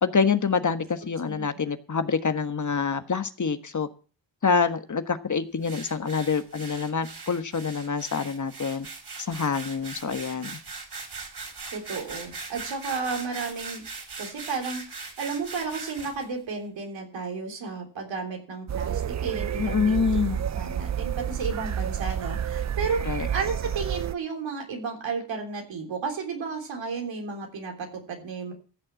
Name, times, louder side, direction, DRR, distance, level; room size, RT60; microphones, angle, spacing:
voice 1, 0.0-3.9 4.4-8.9 9.2-10.6 19.6-20.5 23.0-23.3, left 5 dB, 40° left, 9 dB, 1.4 m, -26 dB
sound 1, 5.6-16.3, right 4 dB, 60° right, 5.0 m, -40 dB
voice 2, 11.7-13.8 14.2-20.0 20.5-28.5, right 4 dB, 85° right, 2 dB, 3.6 m, -33 dB
sound 2, 18.7-24.1, right 9 dB, 40° right, 0.5 m, -30 dB
15.0 x 6.6 x 7.5 m, 0.39 s
cardioid pair, 50°, 44 cm